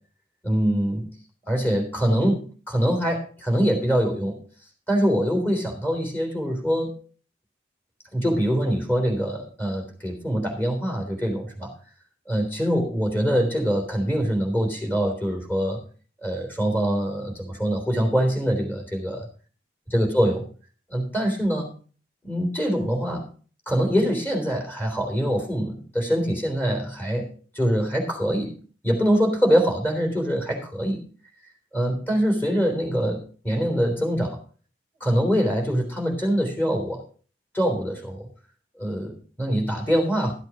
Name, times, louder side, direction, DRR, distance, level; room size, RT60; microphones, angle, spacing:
voice 1, 0.4-1.1 1.5-4.4 4.9-7.0 8.1-11.7 12.3-15.8 16.2-19.3 19.9-20.4 20.9-21.7 22.2-23.2 23.7-28.5 28.8-31.0 31.7-34.4 35.0-37.0 37.5-38.3 38.8-40.3, equal, 10° left, 1 dB, 3.5 m, -24 dB
13.5 x 8.1 x 5.0 m, 0.40 s
head